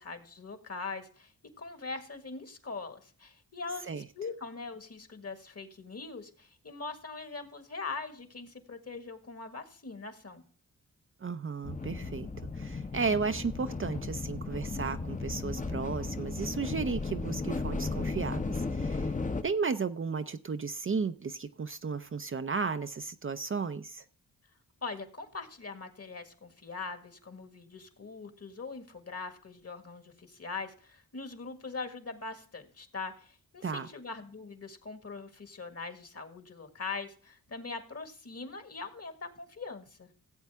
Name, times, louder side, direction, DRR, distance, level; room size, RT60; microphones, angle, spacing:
voice 1, 0.0-10.4 24.8-40.1, left 4 dB, 45° left, 1.8 m, -42 dB
voice 2, 11.2-12.3 12.6-19.1 19.4-24.0 33.6-33.9, right 5 dB, 35° right, 0.6 m, -34 dB
sound 1, 11.6-19.4, left 3 dB, 20° left, 0.8 m, -35 dB
15.5 x 8.0 x 3.5 m
cardioid pair, 65°, 35 cm